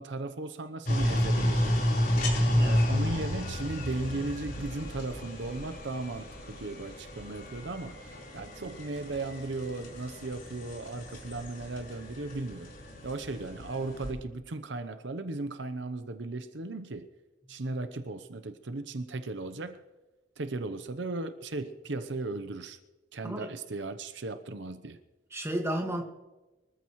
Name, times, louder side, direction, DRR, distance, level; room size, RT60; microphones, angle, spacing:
voice 1, 0.0-1.7 2.6-12.7 13.0-17.1 17.5-19.8 20.4-22.8 23.1-25.0, right 2 dB, 70° right, 0.9 m, -36 dB
sound 1, 0.9-14.1, equal, 50° left, 4.3 m, -31 dB
voice 2, 2.4-2.9 23.2-23.5 25.3-26.0, right 1 dB, 15° right, 1.8 m, -33 dB
24.0 x 14.5 x 3.2 m
head